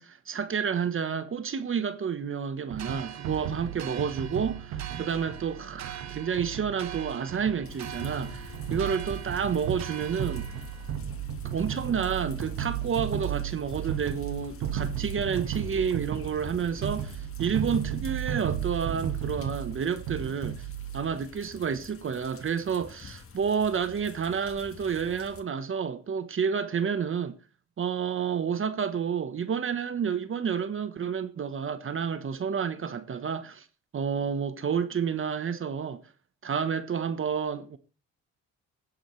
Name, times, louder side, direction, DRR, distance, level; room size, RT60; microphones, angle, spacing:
voice 1, 0.0-10.5 11.4-20.7 20.9-27.3 27.8-33.7 33.9-36.0 36.4-37.8, right 7 dB, 45° right, 1.1 m, -30 dB
sound 1, 2.7-21.1, right 9 dB, 90° right, 1.7 m, -35 dB
sound 2, 2.8-11.0, right 10 dB, 65° right, 1.1 m, -43 dB
sound 3, 7.6-25.4, left 5 dB, 45° left, 1.7 m, -48 dB
17.0 x 10.0 x 3.2 m
cardioid pair, 90°, 30 cm